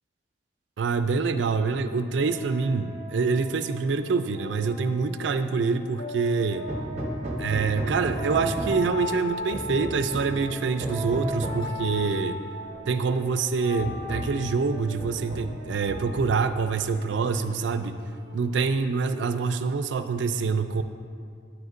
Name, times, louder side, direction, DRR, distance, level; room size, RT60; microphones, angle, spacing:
voice 1, 0.8-6.7 7.4-12.4 12.9-18.0 18.3-20.8, right 4 dB, 85° right, 10 dB, 0.4 m, -26 dB
sound 1, 1.6-19.1, equal, 65° left, 1.7 m, -39 dB
Hammer, 6.7-9.0 9.5-10.4 10.8-11.7 12.8-12.9 13.3-13.4 13.8-14.4 15.0-15.6 15.9-16.6, right 1 dB, 40° right, 1.0 m, -33 dB
9.9 x 7.9 x 2.5 m, 2.2 s
head